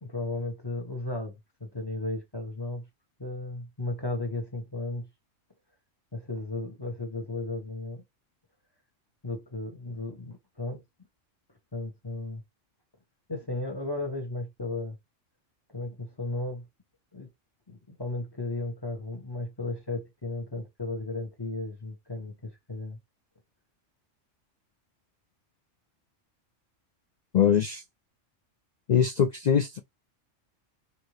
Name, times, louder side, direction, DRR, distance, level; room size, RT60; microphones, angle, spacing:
voice 1, 0.0-2.8 3.2-5.1 6.1-8.0 9.2-10.8 11.7-12.4 13.3-15.0 15.7-16.6 17.1-17.3 17.7-23.0, left 2 dB, 20° left, 1.3 m, -35 dB
voice 2, 27.3-27.8 28.9-29.8, left 8 dB, 85° left, 0.3 m, -22 dB
4.5 x 2.8 x 3.2 m
omnidirectional pair, 1.3 m